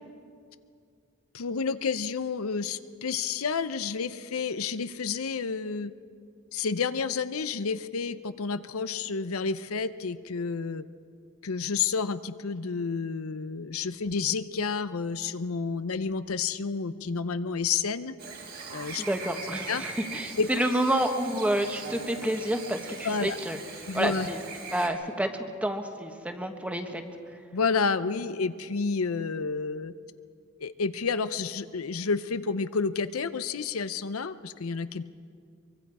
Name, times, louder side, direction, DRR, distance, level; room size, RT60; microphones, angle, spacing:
voice 1, 1.3-5.9 6.5-10.8 11.4-18.1 18.7-19.0 19.7-19.8 20.4-20.5 23.0-23.4 23.9-24.3 27.5-29.9 30.6-35.0, left 5 dB, 90° left, 12 dB, 0.7 m, -30 dB
Chirp tweet / Buzz, 18.2-24.9, right 4 dB, 50° right, 3.7 m, -41 dB
voice 2, 19.0-23.6 23.9-24.4 24.7-27.0, right 1 dB, 5° right, 5 dB, 1.3 m, -29 dB
24.0 x 23.5 x 4.9 m, 2.2 s
head